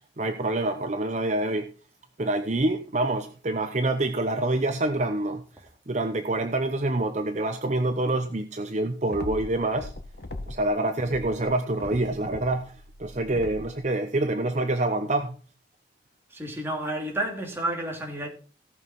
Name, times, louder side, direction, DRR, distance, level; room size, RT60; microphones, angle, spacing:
voice 1, 0.2-1.7 2.2-5.4 5.9-9.9 10.5-12.7 13.0-15.4, right 2 dB, 40° right, 0.8 m, -26 dB
sound 1, 9.1-10.7 11.0-13.8, left 2 dB, 65° left, 1.3 m, -39 dB
voice 2, 16.3-18.3, right 1 dB, 15° right, 3.0 m, -30 dB
17.5 x 6.4 x 4.5 m
head